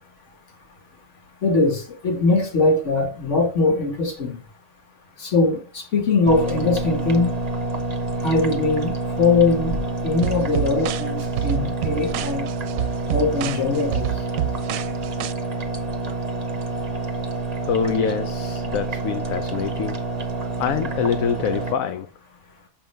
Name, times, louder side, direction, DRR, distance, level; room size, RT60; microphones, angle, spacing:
voice 1, 1.4-4.4 5.2-7.4 8.2-12.5 13.1-14.1, left 3 dB, 55° left, 2.0 m, -21 dB
sound 1, 6.3-21.7, right 3 dB, 30° right, 0.9 m, -28 dB
sound 2, 10.2-15.3, right 12 dB, 75° right, 1.0 m, -28 dB
voice 2, 17.6-20.1 20.6-22.1, left 7 dB, 75° left, 1.1 m, -25 dB
7.0 x 5.6 x 3.2 m
omnidirectional pair, 1.5 m